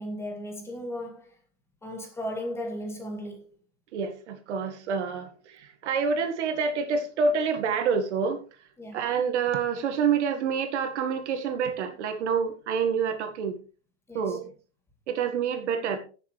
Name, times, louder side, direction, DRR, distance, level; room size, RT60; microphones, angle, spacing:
voice 1, 0.0-1.3 1.8-3.4 8.8-9.0 14.1-14.4, equal, 5° left, 2.0 m, -35 dB
voice 2, 3.9-5.3 5.8-8.4 8.9-13.6 14.1-14.5 15.1-16.0, right 6 dB, 70° right, 1.9 m, -27 dB
17.0 x 7.0 x 3.3 m
supercardioid pair, 150°, 36 cm